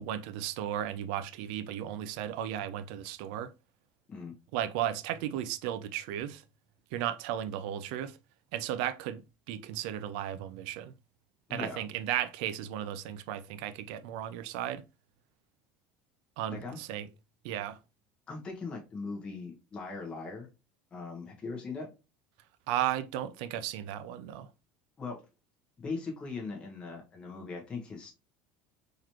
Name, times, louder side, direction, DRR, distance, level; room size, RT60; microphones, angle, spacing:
voice 1, 0.0-3.5 4.5-6.4 6.9-8.2 8.5-9.2 9.5-10.9 11.5-14.8 16.4-17.1 17.4-17.8 22.7-24.5, right 11 dB, 75° right, 0.4 m, -35 dB
voice 2, 11.5-11.8 16.5-16.8 18.3-20.5 20.9-21.9 25.0-25.2 25.8-28.1, left 4 dB, 20° left, 1.1 m, -39 dB
4.0 x 3.1 x 2.8 m
cardioid pair, 160°, 5 cm